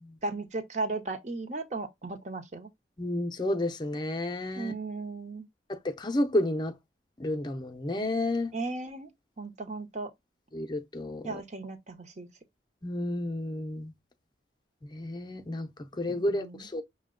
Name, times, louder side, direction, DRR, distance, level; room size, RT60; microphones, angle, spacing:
voice 1, 0.2-2.7 4.6-5.5 8.5-9.1 9.4-10.1 11.2-12.3 16.1-16.6, right 3 dB, 40° right, 0.7 m, -36 dB
voice 2, 3.0-4.7 5.7-6.7 7.2-8.5 10.5-11.4 12.8-13.9 14.8-16.8, left 1 dB, 25° left, 0.5 m, -31 dB
6.0 x 2.2 x 3.6 m
head